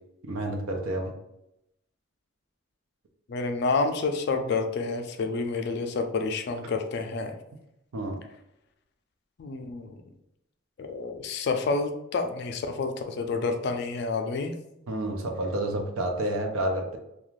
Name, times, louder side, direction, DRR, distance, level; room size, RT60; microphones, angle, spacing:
voice 1, 0.2-1.1 7.9-8.2 14.9-17.0, right 1 dB, 90° right, 3 dB, 0.5 m, -29 dB
voice 2, 3.3-7.4 9.4-9.9 10.8-14.5, left 4 dB, 55° left, 5 dB, 0.3 m, -29 dB
2.4 x 2.3 x 3.0 m, 0.85 s
head